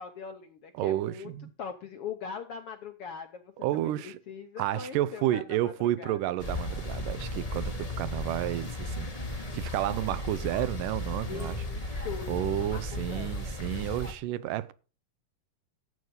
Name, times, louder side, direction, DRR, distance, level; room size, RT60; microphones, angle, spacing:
voice 1, 0.0-1.3 1.6-3.5 3.8-6.2 11.2-13.4, left 6 dB, 70° left, 1.4 m, -41 dB
voice 2, 0.7-1.5 3.6-4.2 4.6-14.7, right 14 dB, 90° right, 2.3 m, -31 dB
sound 1, 6.4-14.1, left 1 dB, 50° left, 0.4 m, -35 dB
11.5 x 8.0 x 5.3 m
omnidirectional pair, 3.7 m